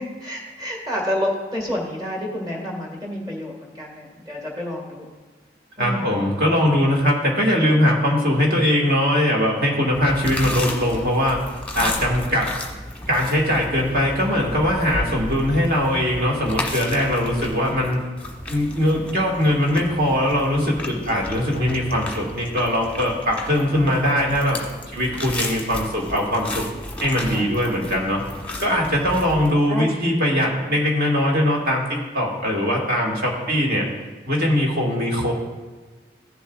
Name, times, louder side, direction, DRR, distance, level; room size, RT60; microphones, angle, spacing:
voice 1, 0.0-5.1 5.8-6.1 11.8-12.0 23.7-24.1 27.2-27.5 29.7-29.9, left 1 dB, 25° right, -2 dB, 2.0 m, -29 dB
voice 2, 5.8-11.4 11.7-12.5 13.1-18.0 18.5-24.6 24.9-26.7 27.0-28.2 28.6-33.9 34.3-35.3, equal, 55° right, -1 dB, 2.2 m, -21 dB
sound 1, 9.9-29.5, left 1 dB, 10° left, 1.2 m, -33 dB
15.0 x 7.1 x 2.5 m, 1.4 s
head